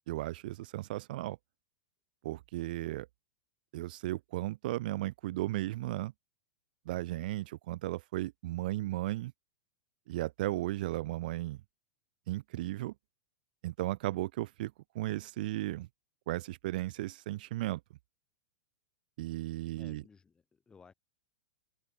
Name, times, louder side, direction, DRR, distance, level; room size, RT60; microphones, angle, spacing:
voice 1, 0.1-1.4 2.2-3.1 3.7-6.1 6.9-9.3 10.1-11.6 12.3-12.9 13.6-15.9 16.3-17.8 19.2-20.0, right 17 dB, 65° right, 0.3 m, -35 dB
voice 2, 19.8-20.9, left 5 dB, 15° left, 3.7 m, -58 dB
hypercardioid pair, 125°, 5 cm